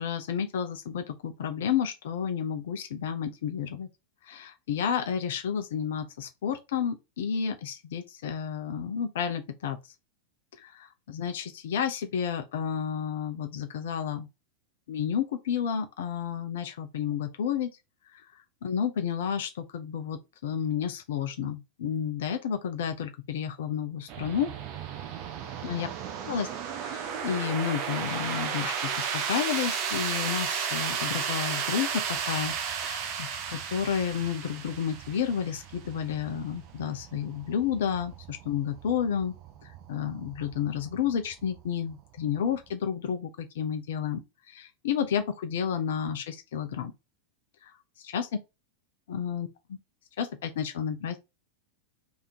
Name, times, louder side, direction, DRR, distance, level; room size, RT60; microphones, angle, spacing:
voice 1, 0.0-3.9 4.3-9.8 10.6-14.3 14.9-17.7 18.1-18.2 18.6-24.5 25.6-25.9 26.3-26.5 26.8-32.5 32.8-39.3 39.6-44.2 44.5-46.9 48.1-48.3 49.1-49.5 50.2-51.2, left 8 dB, 60° left, 0.7 m, -31 dB
sound 1, 24.1-42.7, right 7 dB, 40° right, 1.0 m, -34 dB
3.6 x 3.5 x 4.2 m
figure-of-eight pair, 90°, 0 cm